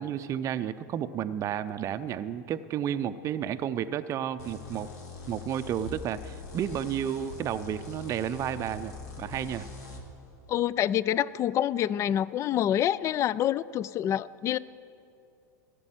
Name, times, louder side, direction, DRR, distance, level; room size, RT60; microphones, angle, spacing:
voice 1, 0.0-4.9 5.3-9.7, right 9 dB, 35° right, 10 dB, 0.5 m, -32 dB
sound 1, 4.4-10.0, left 3 dB, 65° left, 2.5 m, -43 dB
voice 2, 10.5-14.6, left 11 dB, 30° left, 20 dB, 0.3 m, -27 dB
14.5 x 6.8 x 9.1 m, 2.5 s
hypercardioid pair, 95°, 10 cm